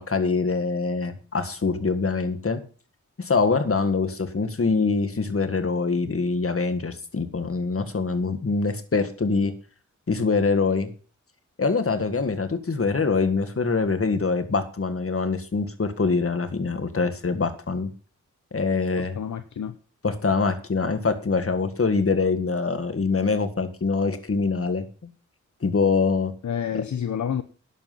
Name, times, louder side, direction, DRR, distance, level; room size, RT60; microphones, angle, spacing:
voice 1, 0.0-2.6 3.2-9.5 10.1-10.9 11.6-17.9 18.5-19.2 20.0-24.9 25.6-26.3 26.7-26.8, left 4 dB, 45° left, 9 dB, 1.9 m, -24 dB
voice 2, 19.0-19.8 26.4-27.4, left 8 dB, 65° left, 11 dB, 0.8 m, -29 dB
11.0 x 8.1 x 5.8 m, 0.39 s
cardioid pair, 55°, 31 cm